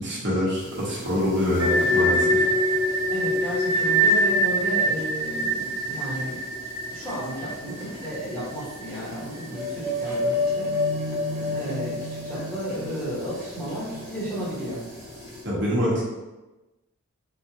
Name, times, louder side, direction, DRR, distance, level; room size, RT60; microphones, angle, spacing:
voice 1, 0.0-2.5 15.4-16.0, equal, 50° right, -8 dB, 1.2 m, -25 dB
sound 1, 0.6-15.4, equal, 5° right, 1.4 m, -43 dB
sound 2, 1.6-8.4 8.7-8.8 9.4-14.7, equal, 25° right, 0.5 m, -25 dB
voice 2, 3.1-6.4 6.9-10.7 11.4-12.0 12.2-14.8, equal, 10° left, -9 dB, 1.1 m, -33 dB
4.1 x 2.5 x 2.9 m, 1.1 s
head